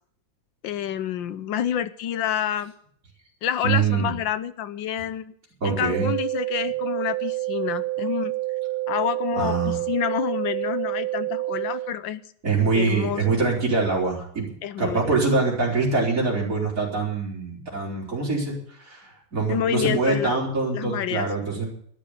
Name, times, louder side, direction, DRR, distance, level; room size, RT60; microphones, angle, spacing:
voice 1, 0.6-2.7 3.4-5.3 5.6-8.3 8.9-12.2 12.7-13.4 14.6-15.2 19.5-20.3 20.7-21.3, left 10 dB, 75° left, 14 dB, 1.5 m, -28 dB
voice 2, 3.6-4.1 5.6-6.1 9.4-9.8 12.4-14.5 14.8-21.7, right 4 dB, 40° right, -3 dB, 5.2 m, -24 dB
sound 1, 5.9-11.9, right 17 dB, 85° right, 1.7 m, -28 dB
13.0 x 10.5 x 8.4 m, 0.63 s
omnidirectional pair, 2.2 m